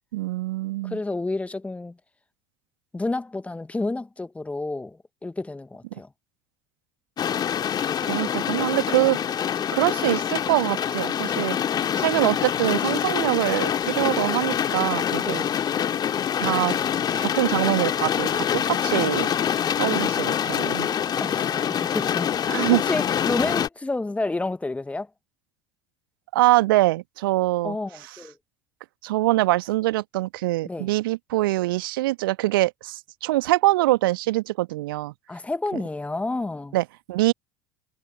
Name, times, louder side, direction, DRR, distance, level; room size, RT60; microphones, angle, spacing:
voice 1, 0.1-1.0 8.0-9.2 9.7-11.6 12.0-15.4 16.4-16.8 17.2-19.3 19.8-20.9 22.5-22.8 26.3-27.8 29.0-35.1 36.7-37.3, right 18 dB, 65° right, 1.5 m, -24 dB
voice 2, 0.8-2.0 2.9-6.1 15.2-15.5 21.2-25.1 27.6-28.3 30.6-30.9 35.3-36.8, left 2 dB, 10° left, 1.4 m, -30 dB
sound 1, 7.2-23.7, left 9 dB, 35° left, 2.6 m, -25 dB
figure-of-eight pair, 65°, 13 cm